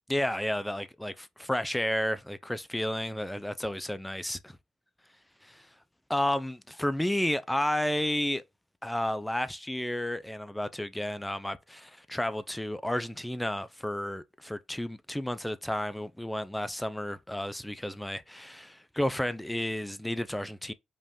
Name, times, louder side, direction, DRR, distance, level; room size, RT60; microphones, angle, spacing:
voice 1, 0.1-4.5 5.4-5.7 6.1-8.4 8.8-20.7, left 1 dB, 5° left, 0.4 m, -32 dB
5.2 x 2.5 x 3.5 m
cardioid pair, 90°, 0 cm